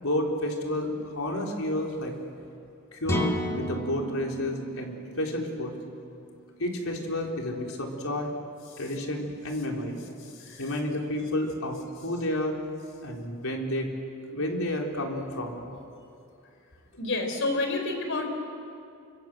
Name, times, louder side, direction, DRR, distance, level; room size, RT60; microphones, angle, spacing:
voice 1, 0.0-2.1 2.9-5.7 6.6-8.3 8.8-10.0 10.6-12.6 13.0-13.9 14.3-15.6, left 1 dB, 80° left, 1 dB, 4.0 m, -30 dB
sound 1, 3.1-6.8, equal, 15° left, 2.2 m, -33 dB
voice 2, 10.2-10.7 17.0-18.3, left 2 dB, 60° left, 5 dB, 4.3 m, -30 dB
28.5 x 25.0 x 8.0 m, 2.5 s
head